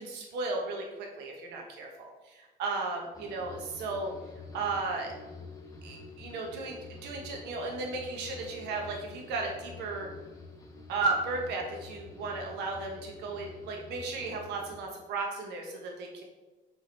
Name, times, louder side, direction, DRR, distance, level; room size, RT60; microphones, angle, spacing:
voice 1, 0.0-4.1 4.5-5.1 5.8-6.8 7.0-10.1 10.9-16.2, right 3 dB, 85° right, 1 dB, 1.2 m, -35 dB
sound 1, 3.1-14.8, left 3 dB, 20° left, 1.2 m, -48 dB
5.0 x 4.9 x 4.0 m, 1.1 s
cardioid pair, 110°, 17 cm